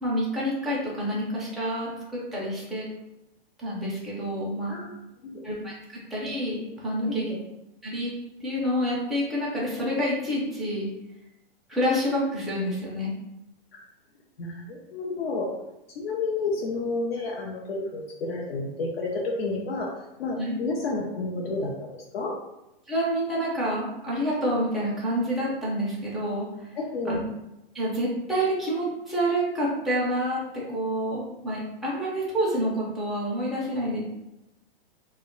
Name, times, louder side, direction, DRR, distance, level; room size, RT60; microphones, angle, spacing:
voice 1, 0.0-2.9 3.6-4.8 5.4-7.3 7.8-8.1 8.4-10.9 11.7-13.1 20.4-20.6 22.9-26.7 27.1-27.2 27.7-34.0, equal, ahead, -7 dB, 0.3 m, -28 dB
voice 2, 7.1-7.4 14.4-15.5 16.0-19.9 20.2-22.4 26.8-27.2, left 3 dB, 80° left, -1 dB, 0.6 m, -30 dB
2.2 x 2.0 x 3.6 m, 0.93 s
hypercardioid pair, 135°, 30 cm